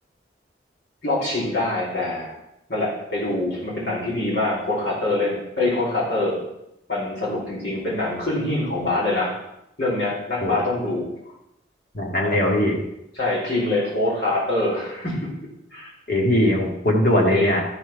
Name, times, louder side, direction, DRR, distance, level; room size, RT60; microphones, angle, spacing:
voice 1, 1.0-2.3 2.7-6.4 6.9-9.4 9.8-11.1 13.2-15.3 15.7-15.9 17.1-17.5, left 2 dB, 65° left, -5 dB, 4.5 m, -24 dB
voice 2, 11.9-12.8 16.1-17.6, left 1 dB, 50° left, -2 dB, 2.2 m, -20 dB
13.0 x 4.7 x 5.9 m, 0.84 s
head